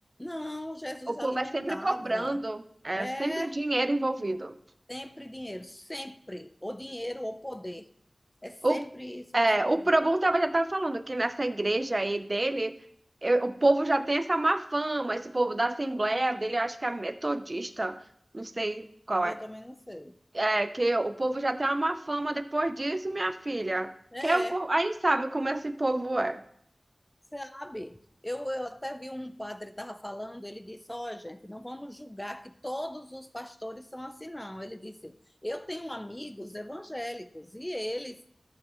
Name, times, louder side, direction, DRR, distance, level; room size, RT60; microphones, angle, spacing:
voice 1, 0.2-2.4 2.9-3.6 4.9-7.9 8.4-10.1 19.2-20.2 24.1-24.6 27.3-28.0 28.2-35.2 35.4-38.2, left 1 dB, 15° left, 10 dB, 0.6 m, -38 dB
voice 2, 1.1-4.5 8.6-8.8 9.3-12.7 13.2-18.0 18.3-19.4 20.3-23.9 24.2-26.4, right 2 dB, 35° right, 10 dB, 0.6 m, -28 dB
13.5 x 7.5 x 3.1 m, 0.69 s
wide cardioid pair, 75°, 0 cm